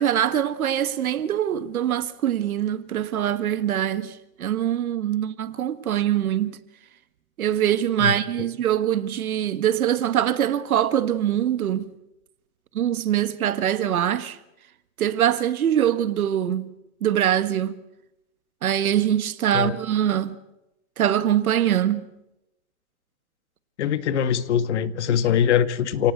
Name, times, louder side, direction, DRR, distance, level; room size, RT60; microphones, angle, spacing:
voice 1, 0.0-6.6 7.4-11.9 12.8-14.4 15.0-16.7 17.0-17.8 18.6-20.4 21.0-22.1, right 10 dB, 80° right, 1.8 m, -23 dB
voice 2, 23.8-26.1, left 9 dB, 50° left, 1.7 m, -22 dB
29.5 x 18.0 x 8.1 m
hypercardioid pair, 165°, 42 cm